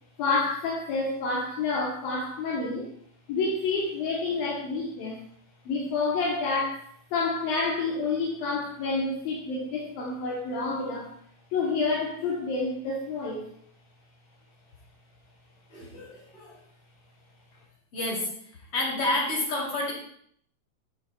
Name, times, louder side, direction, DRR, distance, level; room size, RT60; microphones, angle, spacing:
voice 1, 0.2-2.9 3.3-5.2 5.7-6.8 7.1-11.1 11.5-13.4, left 3 dB, 70° left, -3 dB, 4.0 m, -28 dB
voice 2, 15.7-16.6 17.9-18.3 18.7-19.9, left 2 dB, 35° left, -4 dB, 6.5 m, -29 dB
14.0 x 13.5 x 4.3 m, 0.64 s
omnidirectional pair, 4.3 m